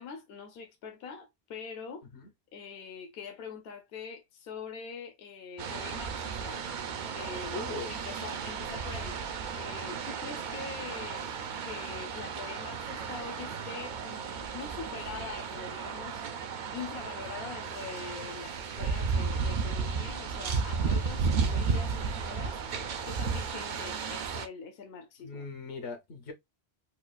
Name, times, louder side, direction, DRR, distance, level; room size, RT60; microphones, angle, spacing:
voice 1, 0.0-2.1 2.5-6.6 7.1-7.5 7.9-9.2 9.5-11.3 11.6-25.4, left 6 dB, 70° left, 0.9 m, -44 dB
sound 1, 5.6-24.5, right 5 dB, 55° right, 0.6 m, -34 dB
voice 2, 7.5-7.9 25.2-26.3, left 3 dB, 85° left, 1.3 m, -39 dB
4.3 x 2.4 x 2.3 m
omnidirectional pair, 1.1 m